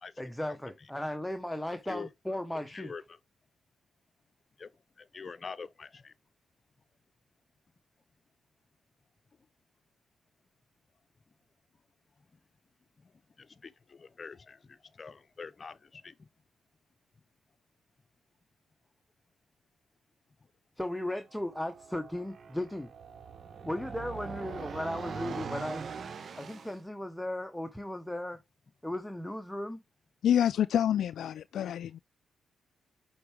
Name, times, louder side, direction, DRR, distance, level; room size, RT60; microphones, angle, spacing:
voice 1, 0.2-2.9 20.8-22.9 23.6-25.8 26.4-28.4 28.8-29.8, left 1 dB, 5° left, 1.1 m, -36 dB
voice 2, 5.0-6.1 13.4-16.1, left 5 dB, 45° left, 0.7 m, -45 dB
sound 1, 21.3-26.8, right 6 dB, 55° right, 0.9 m, -42 dB
voice 3, 30.2-32.0, left 10 dB, 80° left, 0.4 m, -27 dB
7.8 x 4.6 x 3.4 m
cardioid pair, 65°, 0 cm